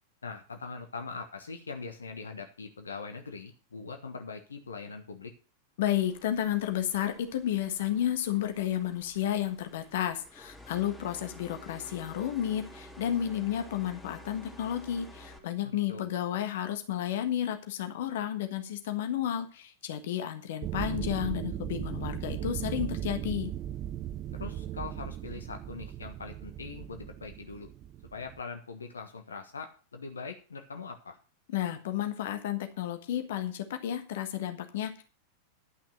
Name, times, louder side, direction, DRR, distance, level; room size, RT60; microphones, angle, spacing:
voice 1, 0.2-5.3 15.6-16.1 24.3-27.7 28.1-31.2, left 4 dB, 75° left, 5 dB, 1.3 m, -42 dB
voice 2, 5.8-23.5 31.5-35.0, left 11 dB, 55° left, 7 dB, 1.4 m, -32 dB
sound 1, 5.9-15.4, equal, 5° left, 2.8 m, -51 dB
sound 2, 20.6-28.4, right 11 dB, 35° right, 0.4 m, -37 dB
11.5 x 6.0 x 6.2 m, 0.36 s
figure-of-eight pair, 90°, 0 cm